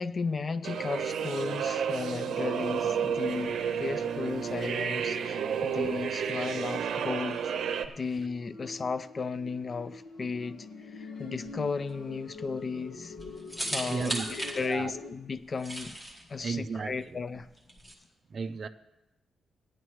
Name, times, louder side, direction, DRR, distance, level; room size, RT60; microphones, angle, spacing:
voice 1, 0.0-7.5 7.9-13.2 13.7-16.0 16.3-17.5, left 4 dB, 30° left, 0.3 m, -35 dB
sound 1, 0.6-7.9, right 7 dB, 80° right, 0.6 m, -31 dB
sound 2, 2.0-7.2 8.0-15.1, left 4 dB, 85° left, 1.2 m, -46 dB
sound 3, 11.4-17.9, right 1 dB, 10° left, 1.5 m, -39 dB
voice 2, 13.9-14.9 16.4-17.2 18.3-18.7, right 5 dB, 40° right, 0.4 m, -35 dB
15.5 x 10.0 x 3.1 m
wide cardioid pair, 155°, 0 cm